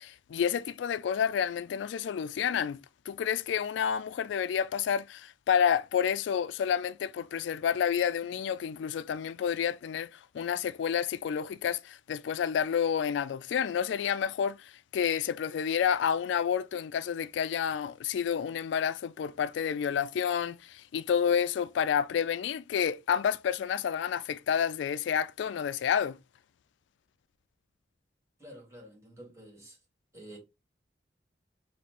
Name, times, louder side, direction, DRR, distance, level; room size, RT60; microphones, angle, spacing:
voice 1, 0.0-2.8 3.1-26.2, left 8 dB, 85° left, 0.3 m, -29 dB
voice 2, 28.4-29.8 30.1-30.4, right 1 dB, 15° right, 2.1 m, -49 dB
4.2 x 2.7 x 4.4 m
head